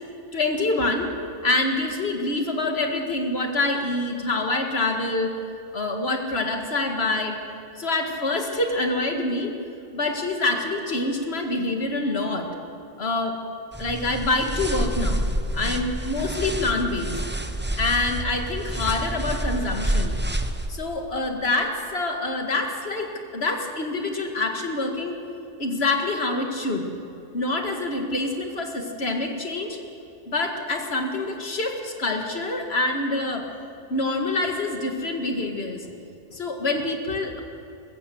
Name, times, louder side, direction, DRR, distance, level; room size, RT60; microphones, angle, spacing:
voice 1, 0.3-1.1 1.4-5.3 5.7-7.4 7.8-9.5 9.9-12.5 13.0-13.3 13.8-15.2 15.5-17.2 17.8-20.2 20.7-25.2 25.6-26.9 27.3-29.8 30.3-33.5 33.9-35.9 36.3-37.4, left 2 dB, 55° left, 3 dB, 2.2 m, -26 dB
sound 1, 13.7-20.7, right 1 dB, 10° right, 0.7 m, -28 dB
23.5 x 15.0 x 7.7 m, 2.7 s
omnidirectional pair, 1.3 m